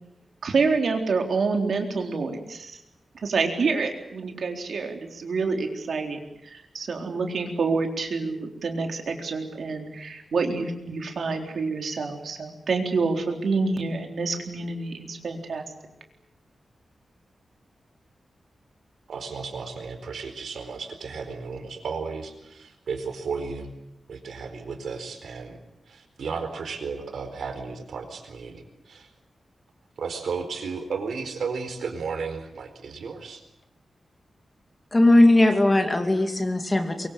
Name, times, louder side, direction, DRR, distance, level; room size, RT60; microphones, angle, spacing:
voice 1, 0.4-2.8 3.2-15.6, right 4 dB, 60° right, 4 dB, 4.0 m, -27 dB
voice 2, 19.1-23.7 24.1-25.6 25.9-29.1 30.0-33.4, right 5 dB, 85° right, 7 dB, 4.4 m, -34 dB
voice 3, 34.9-37.1, left 1 dB, 15° left, 6 dB, 2.3 m, -19 dB
24.0 x 23.5 x 8.8 m, 0.85 s
wide cardioid pair, 175°, 0 cm